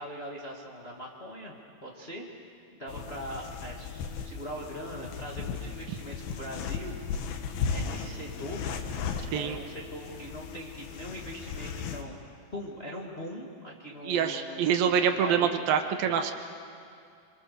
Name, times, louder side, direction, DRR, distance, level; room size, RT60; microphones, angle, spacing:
voice 1, 0.0-1.6 1.8-6.9 7.7-8.6 9.3-12.2 12.5-15.5, equal, 20° left, -2 dB, 1.7 m, -41 dB
sound 1, 2.9-12.0, left 6 dB, 85° left, 3.2 m, -36 dB
voice 2, 14.0-16.3, right 7 dB, 75° right, 6 dB, 2.9 m, -26 dB
28.0 x 24.5 x 6.8 m, 2.4 s
omnidirectional pair, 4.2 m